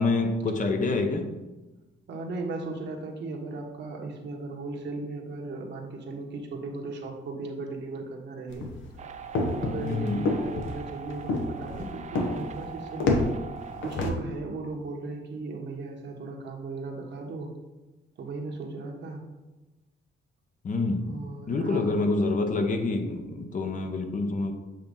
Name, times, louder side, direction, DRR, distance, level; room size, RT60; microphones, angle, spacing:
voice 1, 0.0-1.3 9.7-10.3 20.6-21.1 21.5-24.5, left 3 dB, 40° left, 0.9 m, -27 dB
voice 2, 2.1-8.7 9.4-13.3 13.8-17.5 18.2-19.2 21.0-21.9, right 3 dB, 60° right, 1.3 m, -36 dB
sound 1, 8.5-14.1, left 3 dB, 75° left, 1.1 m, -29 dB
sound 2, 9.0-14.1, right 7 dB, 35° right, 0.5 m, -42 dB
7.8 x 2.9 x 5.3 m
cardioid pair, 90°, 20 cm